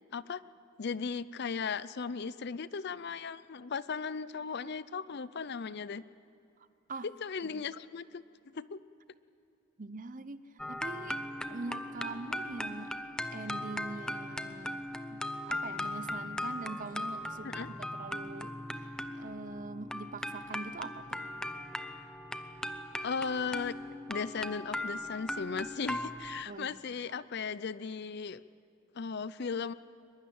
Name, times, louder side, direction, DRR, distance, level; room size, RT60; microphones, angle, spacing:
voice 1, 0.1-0.4 0.8-6.0 7.0-8.8 17.4-17.7 23.0-23.8 24.1-28.4 28.9-29.7, left 5 dB, 55° left, 17 dB, 0.5 m, -37 dB
voice 2, 9.8-10.4 10.7-11.2 11.5-12.9 13.3-14.8 15.1-18.5 19.1-21.2 26.5-26.8, right 3 dB, 40° right, 14 dB, 0.7 m, -43 dB
sound 1, 10.6-26.4, left 1 dB, 5° left, 0.7 m, -39 dB
22.5 x 22.0 x 8.7 m, 2.6 s
head